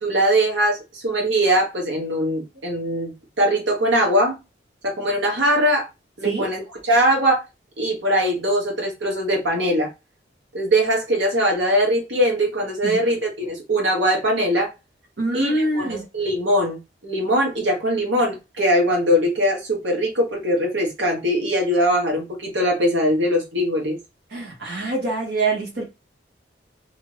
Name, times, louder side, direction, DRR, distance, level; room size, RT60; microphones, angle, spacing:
voice 1, 0.0-3.1 3.4-4.4 4.8-5.9 6.2-7.4 7.8-9.9 10.5-14.7 15.3-24.0, equal, 85° right, 1.0 m, -21 dB
voice 2, 15.2-16.0 24.3-25.8, right 2 dB, 60° right, 1.2 m, -24 dB
2.8 x 2.5 x 3.1 m
head